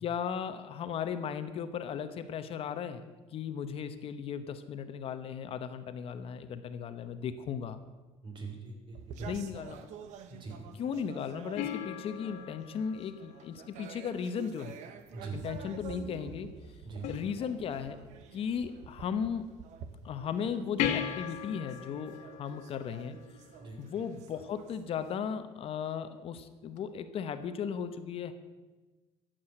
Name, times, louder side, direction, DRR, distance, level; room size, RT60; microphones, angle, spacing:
voice 1, 0.0-7.8 9.2-9.9 10.8-14.8 15.3-16.5 17.1-18.0 18.3-19.5 20.0-23.2 23.8-28.3, left 7 dB, 50° left, 10 dB, 0.9 m, -36 dB
voice 2, 8.2-9.3 10.3-10.6 15.1-15.4 16.8-17.1 23.6-23.8, right 4 dB, 40° right, 3 dB, 3.5 m, -42 dB
sound 1, 8.9-25.2, right 7 dB, 75° right, 1.2 m, -49 dB
sound 2, 11.6-14.2 17.0-18.0 20.8-23.7 26.8-26.9, left 9 dB, 80° left, 1.6 m, -38 dB
14.5 x 7.8 x 7.7 m, 1.3 s
cardioid pair, 125°, 12 cm